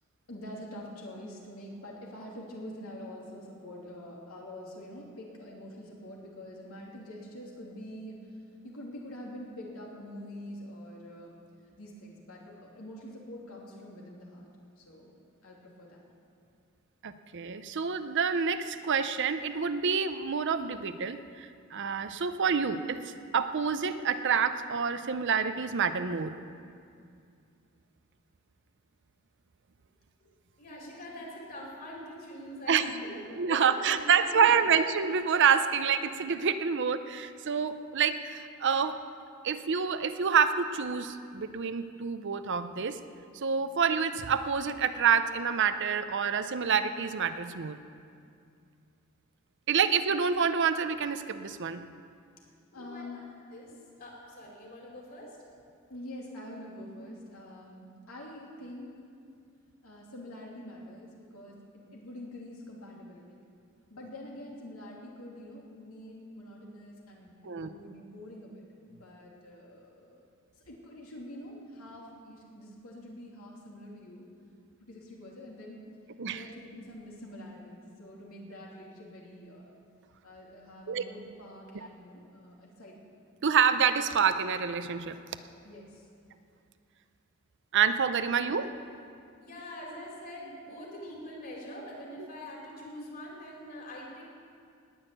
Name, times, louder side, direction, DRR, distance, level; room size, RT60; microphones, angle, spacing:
voice 1, 0.3-11.4 11.8-14.5 14.8-16.0 32.8-33.3 52.7-53.3 55.9-59.0 59.8-63.4 63.9-68.6 68.9-70.3 70.5-74.3 74.8-75.9 76.3-79.7 80.2-83.1 85.6-86.1, left 1 dB, 85° left, -2 dB, 2.9 m, -46 dB
voice 2, 17.0-23.0 23.3-26.4 32.7-32.9 33.4-39.0 39.4-43.0 43.3-47.8 49.7-51.8 67.4-67.7 76.2-76.4 80.9-81.0 83.4-85.2 87.7-88.7, right 6 dB, 60° right, 11 dB, 0.6 m, -27 dB
voice 3, 30.6-34.8 52.7-53.0 53.5-53.7 54.0-55.3 89.4-94.3, equal, 45° left, -3 dB, 4.1 m, -44 dB
19.0 x 6.4 x 9.1 m, 2.3 s
head